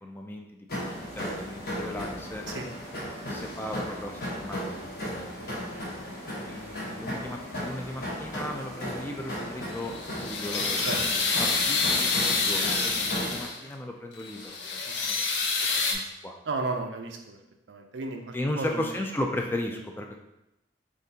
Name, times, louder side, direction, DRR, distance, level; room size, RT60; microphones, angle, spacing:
voice 1, 0.0-2.4 3.3-5.6 6.3-15.2 15.6-16.4 18.3-20.2, left 1 dB, 10° left, 2 dB, 0.3 m, -36 dB
sound 1, 0.7-13.4, equal, 55° left, 1.1 m, -36 dB
voice 2, 5.4-6.4 10.8-11.0 14.9-15.2 16.4-17.4 17.7-18.9, right 3 dB, 90° right, 4 dB, 0.5 m, -35 dB
sound 2, 9.7-13.7 14.2-15.9, left 4 dB, 85° left, 0.6 m, -27 dB
3.7 x 3.3 x 2.8 m, 0.90 s
head